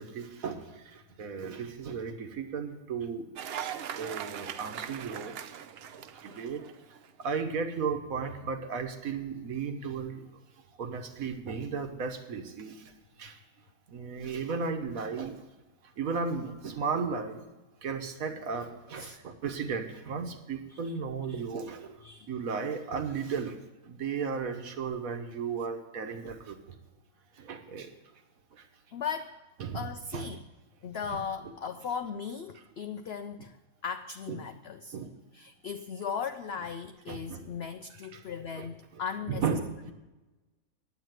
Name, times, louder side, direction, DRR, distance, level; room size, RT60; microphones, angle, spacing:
voice 1, 0.0-3.3 3.6-5.4 6.1-6.6 7.2-10.2 10.8-12.8 13.2-13.4 13.9-15.4 16.0-17.4 17.8-22.0 22.3-23.6 23.8-26.7 27.4-27.9 28.5-28.6 29.6-30.3 31.1-31.2 31.4-31.5 34.3-34.4 34.9-35.1 37.1-37.4 37.9-38.2 38.6-39.0 39.3-39.9, right 5 dB, 65° right, 6 dB, 1.4 m, -35 dB
Cheering / Applause, 3.4-7.1, right 9 dB, 80° right, 0.5 m, -40 dB
voice 2, 28.9-29.4 29.7-30.4 30.8-33.6 33.8-35.0 35.3-39.4, left 6 dB, 85° left, 9 dB, 0.5 m, -37 dB
9.5 x 8.2 x 9.1 m, 1.1 s
omnidirectional pair, 1.7 m